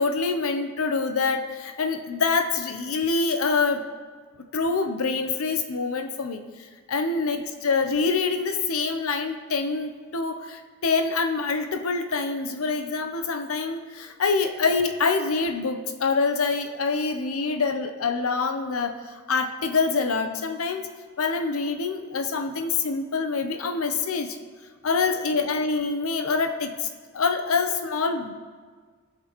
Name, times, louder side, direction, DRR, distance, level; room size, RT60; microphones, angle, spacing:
voice 1, 0.0-3.9 4.5-6.4 6.9-19.0 19.3-20.9 21.2-24.4 24.8-26.9 27.1-28.3, left 4 dB, 80° left, 7 dB, 0.7 m, -25 dB
16.0 x 6.1 x 3.0 m, 1.5 s
head